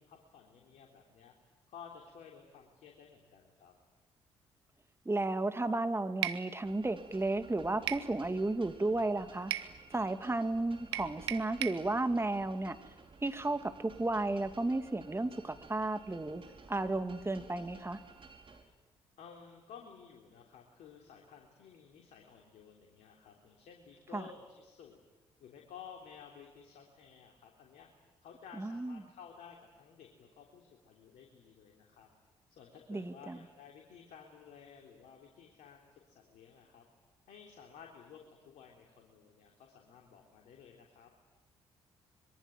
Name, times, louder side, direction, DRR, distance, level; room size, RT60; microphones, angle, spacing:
voice 1, 0.0-1.3 1.7-3.7 18.6-18.7 19.2-25.0 25.4-27.9 28.2-32.1 32.5-36.8 37.3-41.1, left 7 dB, 65° left, 1 dB, 3.5 m, -54 dB
voice 2, 5.1-9.5 9.9-12.8 13.2-16.4 16.7-18.0 24.1-24.2 28.6-29.0 32.9-33.4, right 2 dB, 20° right, 9 dB, 2.5 m, -33 dB
sound 1, 6.2-6.4 7.9-8.1 9.5-9.7 10.9-11.8, right 13 dB, 90° right, 0.9 m, -35 dB
sound 2, 6.6-18.6, right 4 dB, 40° right, 4.7 m, -55 dB
25.5 x 23.0 x 9.3 m, 1.2 s
hypercardioid pair, 45°, 13 cm